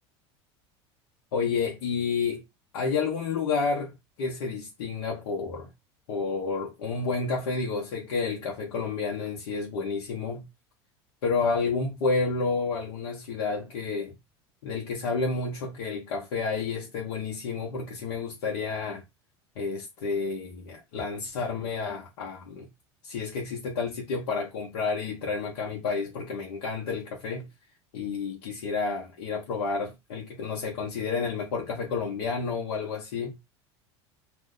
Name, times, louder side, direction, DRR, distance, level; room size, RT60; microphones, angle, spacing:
voice 1, 1.3-2.4 2.7-5.7 6.1-10.4 11.2-14.2 14.6-19.0 19.6-22.7 23.0-27.5 27.9-33.4, left 4 dB, 75° left, 0.8 m, -30 dB
2.6 x 2.1 x 3.6 m
hypercardioid pair, 95°, 15 cm